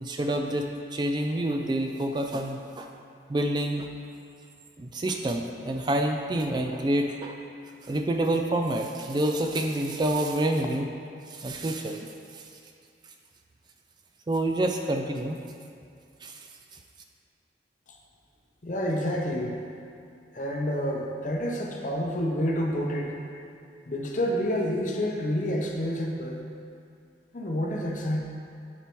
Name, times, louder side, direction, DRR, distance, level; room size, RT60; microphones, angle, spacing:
voice 1, 0.0-2.9 3.3-3.9 4.8-7.4 7.8-10.9 11.3-12.1 12.3-12.4 14.3-15.4 16.2-16.4, right 1 dB, 25° right, 3 dB, 0.3 m, -28 dB
voice 2, 18.6-19.6 20.3-23.2 23.9-26.4 27.3-28.2, equal, 45° left, 1 dB, 0.7 m, -28 dB
10.0 x 4.4 x 3.0 m, 2.4 s
head